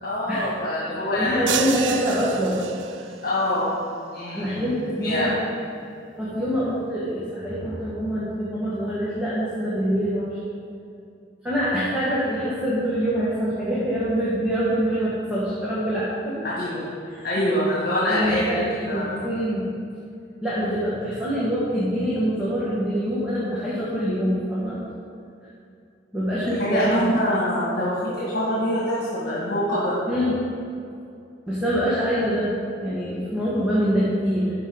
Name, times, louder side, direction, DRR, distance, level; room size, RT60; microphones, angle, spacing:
voice 1, 0.0-2.0 3.2-3.8 4.1-4.6 5.0-5.4 16.4-16.9 17.2-18.6 18.9-19.2 26.4-30.0, left 1 dB, 55° left, -8 dB, 2.0 m, -25 dB
voice 2, 1.1-3.1 4.3-5.3 6.2-10.5 11.4-16.4 17.1-17.3 18.1-19.7 20.4-24.8 26.1-27.1 30.1-30.4 31.5-34.5, equal, 5° right, -10 dB, 1.5 m, -25 dB
sound 1, 1.5-3.3, right 8 dB, 80° right, 0.4 m, -30 dB
12.5 x 5.1 x 3.9 m, 2.5 s
head